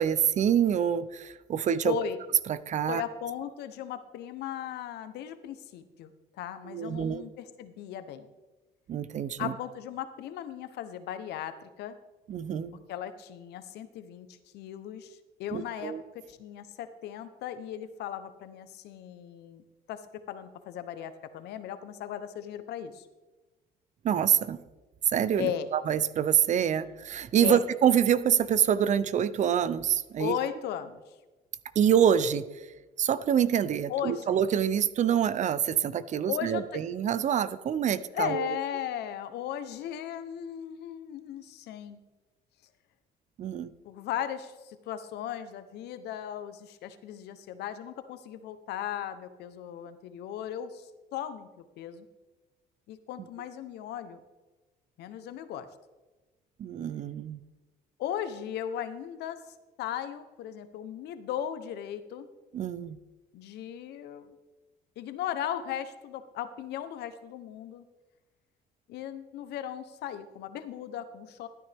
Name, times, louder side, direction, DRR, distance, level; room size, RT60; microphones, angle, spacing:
voice 1, 0.0-2.0 2.5-3.0 6.6-7.3 8.9-9.5 12.3-12.8 15.5-16.0 24.0-24.6 25.1-30.4 31.8-32.7 33.0-38.5 43.4-43.7 56.6-57.4 62.5-63.0, right 9 dB, 45° right, 16 dB, 0.5 m, -26 dB
voice 2, 1.8-2.2 2.9-6.1 6.4-8.3 9.4-12.0 12.9-15.9 16.3-19.6 19.9-20.0 20.3-23.1 25.4-25.7 27.4-27.6 30.2-31.0 33.9-34.4 36.3-36.8 38.1-42.0 43.8-52.1 52.9-54.2 55.0-55.7 58.0-59.4 59.8-62.3 63.3-64.4 65.0-67.8 68.9-71.5, left 10 dB, 75° left, 11 dB, 0.9 m, -37 dB
13.0 x 9.5 x 3.5 m, 1.2 s
cardioid pair, 110°, 17 cm